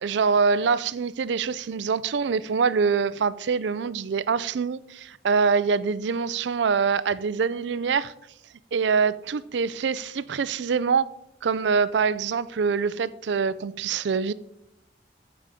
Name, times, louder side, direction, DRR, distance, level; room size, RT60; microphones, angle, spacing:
voice 1, 0.0-8.1 8.7-11.1 11.4-14.3, right 5 dB, 75° right, 0.4 m, -24 dB
14.0 x 5.0 x 5.0 m
head